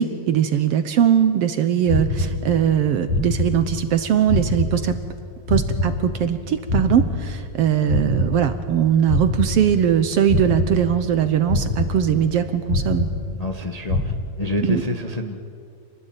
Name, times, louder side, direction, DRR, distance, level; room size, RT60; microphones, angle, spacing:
voice 1, 0.0-5.0 5.5-13.1 14.6-14.8, right 9 dB, 65° right, 10 dB, 1.7 m, -20 dB
sound 1, 1.9-2.8 3.1-4.0 4.3-6.4 6.7-8.8 9.1-10.0 10.3-11.2 11.5-12.4 12.7-13.6 13.9-14.1, left 2 dB, 85° left, 4.7 m, -25 dB
voice 2, 13.4-15.3, left 2 dB, 60° left, 4 dB, 0.4 m, -27 dB
27.5 x 19.5 x 9.2 m, 2.3 s
omnidirectional pair, 3.3 m